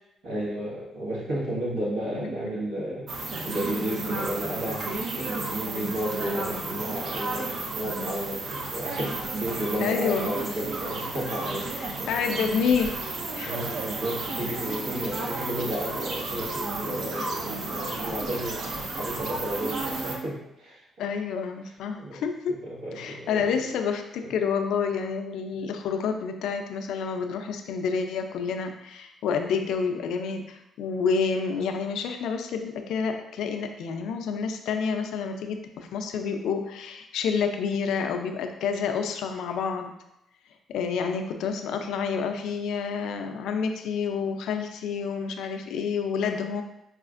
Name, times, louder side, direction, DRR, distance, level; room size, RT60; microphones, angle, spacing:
voice 1, 0.2-3.1 3.4-12.1 13.4-21.2 21.6-23.5 24.2-24.3, right 1 dB, 85° right, -6 dB, 1.3 m, -33 dB
sound 1, 3.1-20.2, right 2 dB, 60° right, 0.6 m, -33 dB
voice 2, 9.8-10.3 11.8-12.9 13.3-13.5 21.0-22.6 22.9-39.9 40.7-46.6, left 6 dB, 80° left, 5 dB, 0.4 m, -29 dB
4.9 x 2.4 x 2.4 m, 0.86 s
cardioid pair, 90°, 0 cm